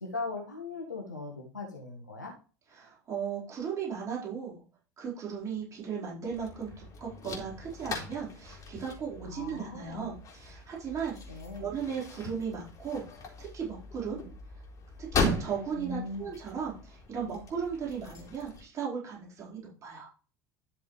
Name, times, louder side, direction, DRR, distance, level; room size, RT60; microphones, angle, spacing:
voice 1, 0.0-2.3 9.2-10.1 11.3-11.7 15.8-16.2, left 3 dB, 85° left, 0 dB, 1.7 m, -39 dB
voice 2, 2.7-4.6 5.0-13.0 13.4-14.2 15.0-20.1, right 7 dB, 35° right, -5 dB, 4.7 m, -36 dB
sound 1, 6.3-18.6, left 2 dB, 35° left, 4.0 m, -38 dB
12.0 x 6.9 x 3.3 m, 0.36 s
figure-of-eight pair, 70°, 9 cm